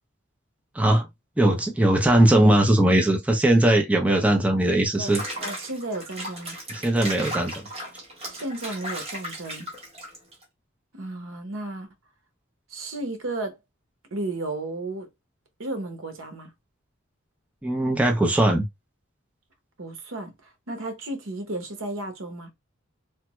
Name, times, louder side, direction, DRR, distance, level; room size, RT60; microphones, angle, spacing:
voice 1, 0.8-1.1 1.4-5.2 6.7-7.5 17.6-18.6, right 1 dB, 5° right, 0.4 m, -20 dB
Water / Bathtub (filling or washing), 4.9-10.4, right 1 dB, 30° right, 1.1 m, -36 dB
voice 2, 5.0-6.6 8.3-9.7 10.9-11.9 12.7-13.6 14.1-15.1 15.6-16.5 19.8-20.3 20.7-22.5, right 2 dB, 80° right, 0.9 m, -33 dB
3.3 x 2.0 x 3.0 m
head